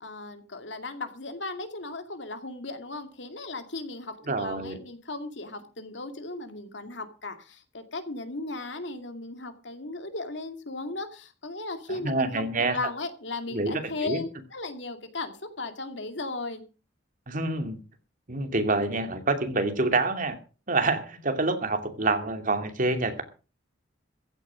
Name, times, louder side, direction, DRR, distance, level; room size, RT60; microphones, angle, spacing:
voice 1, 0.0-12.4 12.7-16.6, left 2 dB, 70° left, 8 dB, 2.4 m, -36 dB
voice 2, 4.3-4.8 11.9-12.8 13.5-13.7 14.0-14.2 17.3-17.8 18.3-20.4 20.7-23.2, right 2 dB, 45° right, 6 dB, 2.6 m, -27 dB
15.0 x 9.3 x 6.2 m, 0.35 s
head